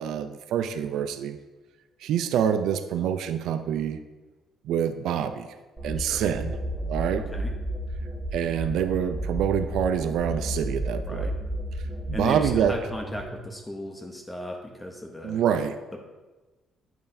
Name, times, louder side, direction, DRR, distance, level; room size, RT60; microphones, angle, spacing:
voice 1, 0.0-1.4 2.0-4.0 4.6-5.5 5.8-6.6 6.9-7.2 8.3-11.3 12.1-12.8 15.2-15.8, right 9 dB, 80° right, 9 dB, 0.4 m, -26 dB
sound 1, 5.8-13.4, right 1 dB, 5° right, 1.5 m, -32 dB
voice 2, 7.2-7.5 11.1-11.3 12.1-15.4 15.9-16.0, left 1 dB, 10° left, 2 dB, 0.7 m, -35 dB
8.7 x 5.5 x 2.6 m, 1.2 s
cardioid pair, 130°, 0 cm